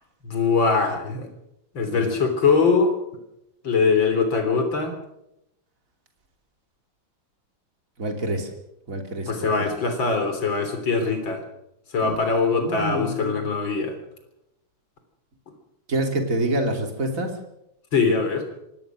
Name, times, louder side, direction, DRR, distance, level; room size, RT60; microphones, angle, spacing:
voice 1, 0.2-1.3 1.7-2.9 3.6-4.9 9.3-11.4 11.9-14.0 17.9-18.5, left 4 dB, 60° left, 6 dB, 4.2 m, -22 dB
voice 2, 1.8-2.1 8.0-8.5 8.9-9.7 12.0-12.2 12.4-13.5 15.9-17.3, right 1 dB, 35° right, 4 dB, 3.2 m, -27 dB
25.0 x 17.5 x 6.2 m, 0.84 s
omnidirectional pair, 2.4 m